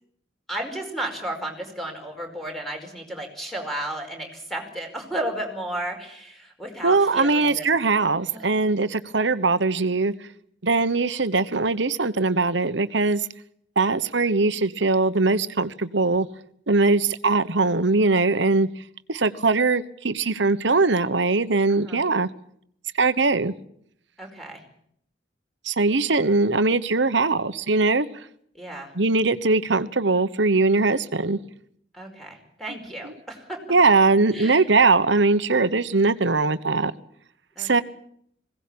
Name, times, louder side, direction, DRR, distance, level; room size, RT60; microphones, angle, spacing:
voice 1, 0.5-7.7 8.3-8.5 21.7-22.0 24.2-24.6 28.5-28.9 31.9-33.6 34.3-34.7 37.5-37.8, right 1 dB, ahead, 2 dB, 5.0 m, -33 dB
voice 2, 6.8-10.1 10.6-13.2 13.8-16.3 16.7-18.7 19.1-22.3 23.0-23.5 25.7-28.1 29.0-31.4 33.7-36.9 37.6-37.8, right 3 dB, 70° right, 13 dB, 1.2 m, -21 dB
21.0 x 17.5 x 8.7 m, 0.69 s
head